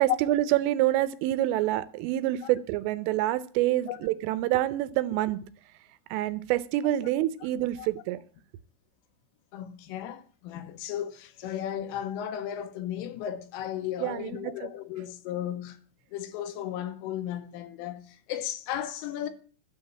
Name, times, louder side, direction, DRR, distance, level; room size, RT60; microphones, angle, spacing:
voice 1, 0.0-5.4 6.1-8.2 14.0-14.7, right 14 dB, 85° right, 3.3 m, -27 dB
voice 2, 9.5-15.8 16.1-19.3, left 10 dB, 85° left, 3.7 m, -35 dB
12.5 x 6.5 x 8.7 m
omnidirectional pair, 5.6 m